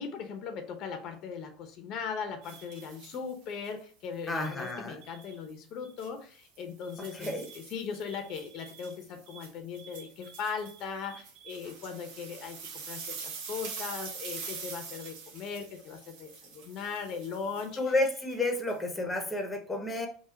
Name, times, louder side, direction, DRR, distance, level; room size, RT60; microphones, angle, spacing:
voice 1, 0.0-17.9, left 6 dB, 55° left, 6 dB, 0.8 m, -39 dB
sound 1, 2.4-3.7 4.4-5.3 5.8-6.1 6.5-18.8, right 5 dB, 70° right, 1.1 m, -45 dB
voice 2, 4.3-5.0 7.1-7.5 17.8-20.1, left 2 dB, 10° left, 4 dB, 0.9 m, -31 dB
3.7 x 2.4 x 4.4 m, 0.43 s
supercardioid pair, 100°, 0 cm